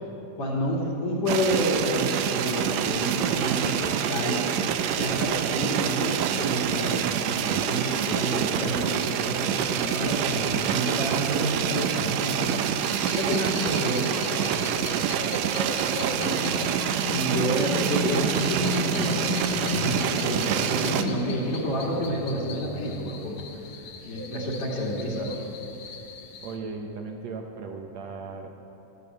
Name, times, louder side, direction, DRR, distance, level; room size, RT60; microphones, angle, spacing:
voice 1, 0.4-4.5 5.0-12.6 13.1-15.0 16.2-16.4 17.1-23.4 24.0-25.4, equal, 45° left, -4 dB, 3.0 m, -29 dB
sound 1, 1.3-21.0, right 9 dB, 85° right, 1.5 m, -27 dB
sound 2, 12.8-26.6, left 4 dB, 65° left, 1.3 m, -35 dB
voice 2, 15.9-16.7 25.0-25.4 26.4-28.7, right 4 dB, 70° right, 3 dB, 1.8 m, -38 dB
13.5 x 12.5 x 7.8 m, 2.9 s
omnidirectional pair, 3.9 m